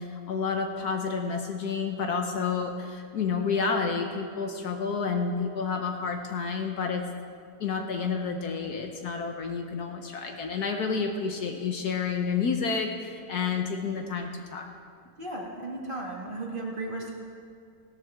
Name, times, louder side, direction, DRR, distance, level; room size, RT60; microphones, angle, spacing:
voice 1, 0.0-7.0 7.6-14.7, left 5 dB, 65° left, 4 dB, 1.3 m, -30 dB
voice 2, 15.2-17.1, right 2 dB, 30° right, -2 dB, 1.8 m, -35 dB
17.5 x 12.5 x 3.6 m, 2.4 s
omnidirectional pair, 1.9 m